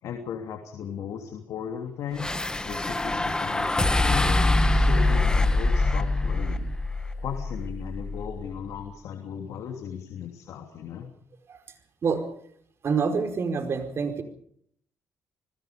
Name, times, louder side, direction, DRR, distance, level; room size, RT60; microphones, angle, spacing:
voice 1, 0.0-2.3 2.6-6.7 7.2-11.1, left 8 dB, 75° left, 4 dB, 3.0 m, -36 dB
sound 1, 2.2-8.5, left 2 dB, 15° left, 1.6 m, -24 dB
voice 2, 12.8-14.2, right 5 dB, 50° right, 7 dB, 4.8 m, -26 dB
27.5 x 20.0 x 5.2 m, 0.65 s
cardioid pair, 85°, 6 cm